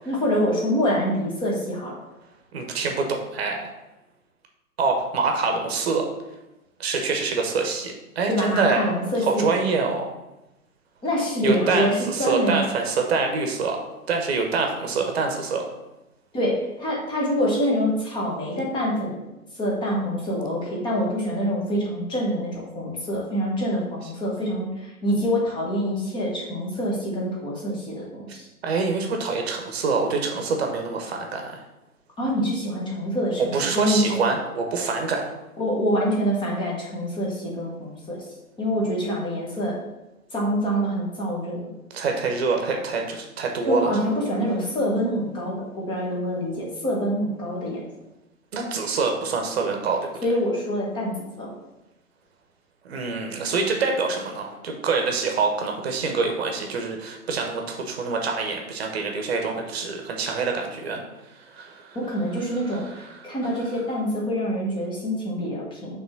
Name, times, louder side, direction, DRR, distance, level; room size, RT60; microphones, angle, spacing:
voice 1, 0.0-2.0 8.3-9.4 11.0-12.6 16.3-19.2 19.5-28.5 32.2-34.1 35.6-38.3 38.6-39.8 40.3-41.6 43.6-47.9 50.2-51.5 61.9-66.0, equal, 10° left, -3 dB, 1.3 m, -26 dB
voice 2, 2.5-3.7 4.8-6.0 6.8-8.9 9.3-10.1 11.4-13.8 14.1-15.6 28.6-31.6 33.5-35.3 41.9-43.9 48.5-50.1 52.8-61.0 61.3-62.0, right 4 dB, 45° right, 3 dB, 1.2 m, -25 dB
6.1 x 3.7 x 5.9 m, 0.98 s
figure-of-eight pair, 130°, 44 cm